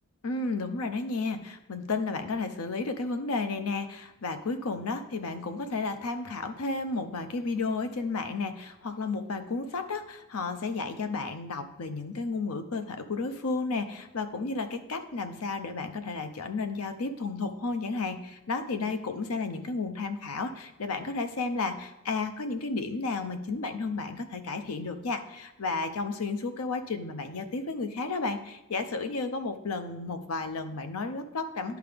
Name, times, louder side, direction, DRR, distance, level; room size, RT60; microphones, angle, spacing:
voice 1, 0.2-31.8, left 3 dB, 90° left, 8 dB, 0.7 m, -32 dB
11.5 x 4.7 x 3.4 m, 0.95 s
head